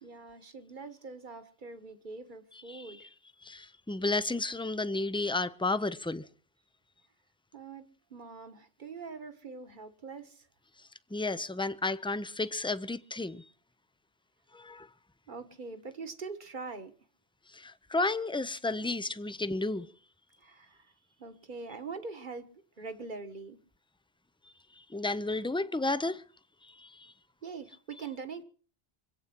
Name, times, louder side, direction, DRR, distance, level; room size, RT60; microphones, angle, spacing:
voice 1, 0.0-3.1 7.5-10.5 15.3-16.9 20.4-20.9 21.2-22.5 22.8-23.6 27.4-28.4, right 4 dB, 50° right, 1.5 m, -43 dB
voice 2, 3.4-6.2 11.1-13.4 14.5-14.9 17.5-19.9 24.9-26.2 26.8-27.1, left 2 dB, 5° left, 0.5 m, -32 dB
25.5 x 8.8 x 5.9 m
omnidirectional pair, 1.1 m